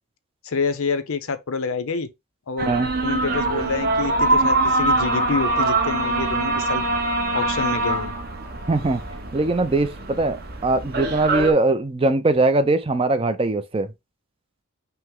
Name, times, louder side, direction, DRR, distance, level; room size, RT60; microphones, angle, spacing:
voice 1, 0.4-2.1 2.5-2.7 3.0-6.9 7.3-8.1, left 5 dB, 70° left, 0.6 m, -27 dB
sound 1, 2.6-11.5, right 2 dB, 45° right, 0.8 m, -23 dB
voice 2, 8.7-9.0 9.3-13.9, right 2 dB, 25° right, 0.4 m, -21 dB
5.7 x 2.1 x 3.7 m
head